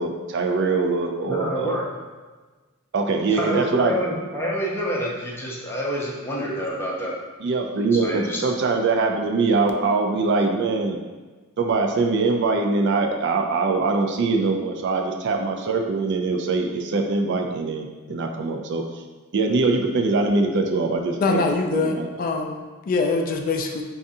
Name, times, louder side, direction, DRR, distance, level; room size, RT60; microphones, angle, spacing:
voice 1, 0.0-1.8 2.9-3.9 7.4-11.0 11.6-18.8 19.3-21.4 21.7-22.1, right 3 dB, 60° right, 3 dB, 0.4 m, -23 dB
voice 2, 1.3-1.8 3.3-7.1 8.0-8.4, equal, 10° left, -4 dB, 0.6 m, -27 dB
voice 3, 21.2-23.8, left 3 dB, 45° left, 3 dB, 0.3 m, -24 dB
5.2 x 2.4 x 2.6 m, 1.3 s
head